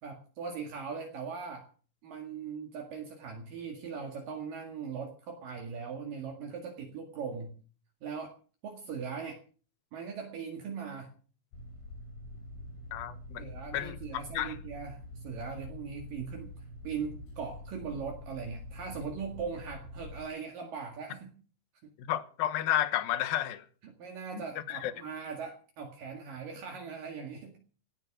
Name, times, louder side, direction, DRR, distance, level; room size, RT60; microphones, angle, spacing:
voice 1, 0.0-1.7 2.0-7.5 8.0-8.4 8.6-9.4 9.9-11.1 13.4-16.5 16.8-21.3 23.8-27.6, right 6 dB, 60° right, 3.5 m, -40 dB
sound 1, 11.5-20.3, left 1 dB, 90° left, 5.9 m, -46 dB
voice 2, 12.9-14.0 14.3-14.6 22.0-23.7 24.7-24.9, left 12 dB, 75° left, 2.9 m, -31 dB
17.5 x 11.0 x 6.0 m
omnidirectional pair, 4.5 m